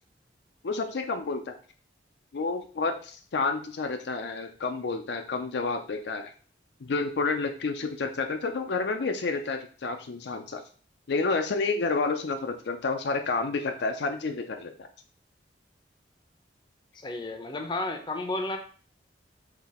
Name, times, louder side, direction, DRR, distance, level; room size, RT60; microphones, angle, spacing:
voice 1, 0.6-1.6 2.3-6.3 6.8-10.6 11.1-14.7, left 4 dB, 65° left, 5 dB, 0.5 m, -30 dB
voice 2, 17.0-18.6, left 2 dB, 25° left, 5 dB, 0.6 m, -32 dB
4.0 x 2.9 x 4.2 m, 0.42 s
head